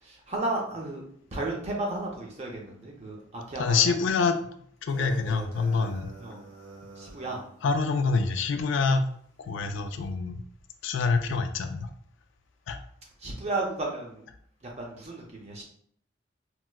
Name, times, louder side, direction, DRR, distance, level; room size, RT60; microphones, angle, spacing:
voice 1, 0.0-1.0 1.3-4.0 6.2-6.4 7.0-7.4 13.2-14.3 14.6-15.6, right 2 dB, 35° right, -2 dB, 0.6 m, -33 dB
voice 2, 3.6-4.5 4.8-6.1 7.6-9.1 9.5-10.4 10.8-11.9 12.7-12.8, left 4 dB, 75° left, 8 dB, 0.3 m, -26 dB
sound 1, 4.9-7.5, right 2 dB, 65° right, 0.9 m, -44 dB
4.4 x 2.1 x 2.2 m, 0.63 s
head